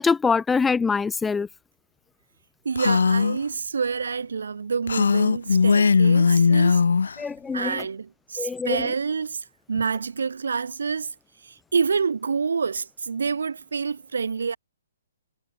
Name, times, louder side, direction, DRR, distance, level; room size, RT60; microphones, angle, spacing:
voice 1, 0.0-1.5 7.2-7.7 8.4-8.8, left 5 dB, 10° left, 1.5 m, -23 dB
voice 2, 2.6-6.8 7.5-11.1 11.4-14.6, right 5 dB, 70° right, 6.1 m, -27 dB
Female speech woman speaking, 2.8-3.4 4.9-7.1, left 5 dB, 70° left, 7.4 m, -19 dB
figure-of-eight pair, 130°, 0 cm